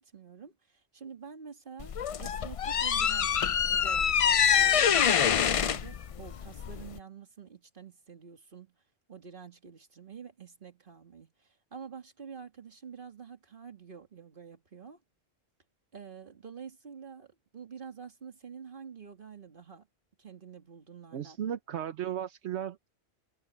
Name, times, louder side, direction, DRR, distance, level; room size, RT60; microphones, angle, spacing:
voice 1, 0.0-8.8 9.1-15.0 15.9-19.9 20.2-21.4, right 6 dB, 50° right, 2.0 m, -48 dB
sound 1, 1.8-7.0, left 8 dB, 65° left, 0.3 m, -25 dB
voice 2, 21.1-22.9, right 10 dB, 80° right, 1.1 m, -35 dB
omnidirectional pair, 1.1 m